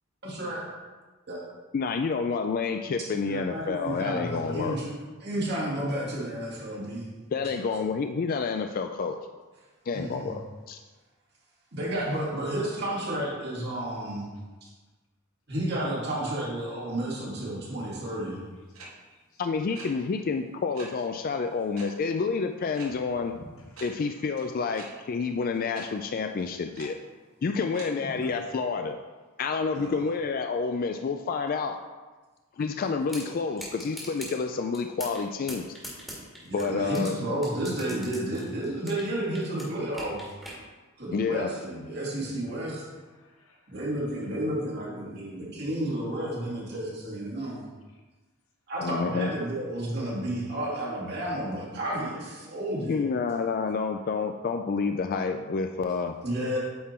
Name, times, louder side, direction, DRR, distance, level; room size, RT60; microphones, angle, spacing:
voice 1, 0.2-0.6 1.3-1.4 3.1-4.9 5.2-7.1 7.4-7.7 9.9-10.3 11.7-14.3 14.6-14.7 15.5-18.4 23.4-23.5 28.0-28.3 29.7-30.0 36.4-40.3 41.0-42.8 43.7-47.6 48.7-53.0 56.2-56.6, right 1 dB, 50° right, -5 dB, 2.1 m, -32 dB
voice 2, 1.7-4.8 7.3-9.2 9.9-10.8 19.4-23.3 23.8-27.0 27.4-29.0 29.4-31.8 32.6-35.7 36.5-37.2 41.1-41.5 48.8-49.3 52.9-56.2, left 5 dB, 45° left, 6 dB, 0.3 m, -29 dB
sound 1, 18.7-18.9 19.7-19.9 20.7-20.9 21.7-21.9 22.7-22.9 23.7-23.9 24.7-24.9 25.7-25.8 26.7-26.8 27.7-27.9, right 3 dB, 75° right, 1.4 m, -43 dB
voice 3, 19.1-19.4 19.7-20.0 23.7-23.8 24.4-24.5 24.7-24.8 30.8-30.9 35.3-37.0 38.3-38.8 41.3-41.4 41.9-43.9 47.9-48.0, left 2 dB, 75° left, 0 dB, 1.3 m, -60 dB
sound 2, 33.1-33.2 33.6-34.3 34.7-35.2 35.5-37.1 37.4-39.1 39.3-40.6, equal, ahead, 1.8 m, -40 dB
8.6 x 3.7 x 4.3 m, 1.3 s
head